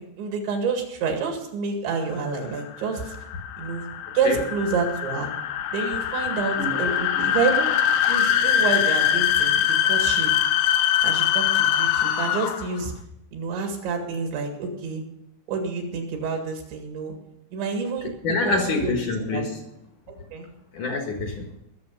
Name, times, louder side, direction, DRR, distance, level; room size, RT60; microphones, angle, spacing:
voice 1, 0.0-3.2 3.6-3.9 4.1-5.3 5.7-7.8 8.1-10.3 11.0-12.9 13.3-15.0 15.5-17.2 17.5-18.1 18.4-18.6 18.8-19.0 19.3-19.4 20.1-20.5, right 5 dB, 80° right, 3 dB, 4.3 m, -28 dB
sound 1, 2.1-12.8, left 10 dB, 85° left, 3.0 m, -23 dB
voice 2, 18.2-19.5 20.7-21.5, left 3 dB, 60° left, 2 dB, 2.3 m, -26 dB
21.5 x 7.2 x 5.5 m, 0.83 s
omnidirectional pair, 5.2 m